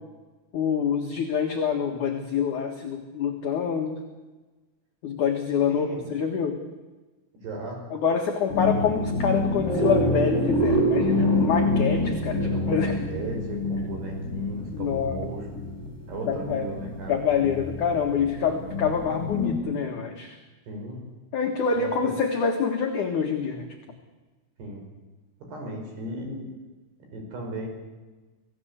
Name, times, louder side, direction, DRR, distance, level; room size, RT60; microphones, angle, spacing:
voice 1, 0.5-4.0 5.0-6.6 7.9-13.0 14.7-15.2 16.3-16.6 17.1-20.4 21.3-23.7, left 6 dB, 60° left, 3 dB, 2.3 m, -26 dB
voice 2, 5.7-6.2 7.4-7.8 12.4-15.5 16.1-17.2 20.7-21.0 21.7-22.1 24.6-24.8 25.5-26.5 27.1-27.7, right 1 dB, 55° right, 2 dB, 7.1 m, -36 dB
sound 1, 8.5-19.5, left 1 dB, 20° left, 4.7 m, -27 dB
26.0 x 16.5 x 8.2 m, 1.2 s
omnidirectional pair, 5.8 m